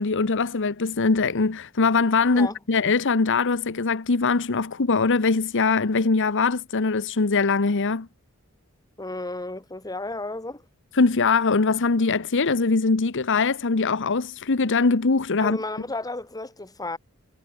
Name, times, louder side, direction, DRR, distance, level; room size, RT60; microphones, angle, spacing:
voice 1, 0.0-8.1 11.0-15.6, left 4 dB, 60° left, 1.0 m, -22 dB
voice 2, 9.0-10.6 15.4-17.0, left 2 dB, 15° left, 2.1 m, -32 dB
head